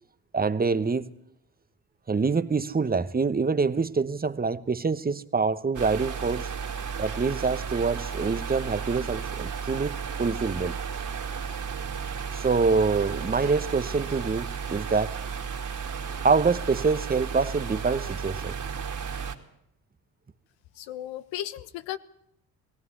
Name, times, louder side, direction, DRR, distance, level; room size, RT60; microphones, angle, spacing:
voice 1, 0.3-1.1 2.1-6.5 7.0-10.8 12.3-15.1 16.2-18.5, right 4 dB, 20° right, 1.1 m, -26 dB
sound 1, 5.7-19.3, right 6 dB, 40° right, 2.7 m, -34 dB
voice 2, 20.8-22.0, left 13 dB, 80° left, 1.2 m, -35 dB
18.5 x 16.0 x 9.8 m
hypercardioid pair, 55°, 45 cm